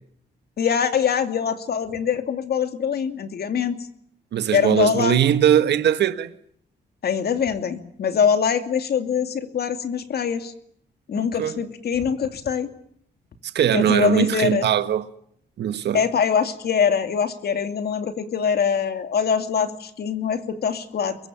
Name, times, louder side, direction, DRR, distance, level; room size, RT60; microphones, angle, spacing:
voice 1, 0.6-3.8 4.5-5.2 7.0-10.5 11.1-12.7 13.7-14.7 15.9-21.2, left 7 dB, 65° left, 2.6 m, -23 dB
voice 2, 4.3-6.3 11.1-11.6 13.5-15.1 15.6-16.0, right 10 dB, 80° right, 1.4 m, -20 dB
25.0 x 22.5 x 8.9 m
cardioid pair, 110°, 17 cm